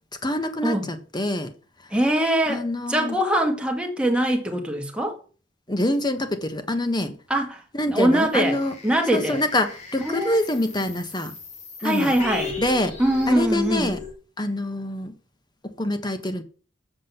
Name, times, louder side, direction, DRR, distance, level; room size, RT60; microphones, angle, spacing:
voice 1, 0.2-1.5 2.5-3.2 5.7-7.1 7.7-8.7 9.1-11.3 11.8-12.1 12.6-12.9 13.3-14.0 14.4-15.1 15.6-16.4, left 1 dB, 20° left, 1.4 m, -25 dB
voice 2, 1.9-5.2 7.3-9.4 10.0-10.4 11.8-12.6 13.0-13.9, right 1 dB, 5° right, 1.9 m, -23 dB
sound 1, 8.4-14.1, left 5 dB, 35° left, 2.8 m, -37 dB
7.9 x 6.3 x 7.2 m
head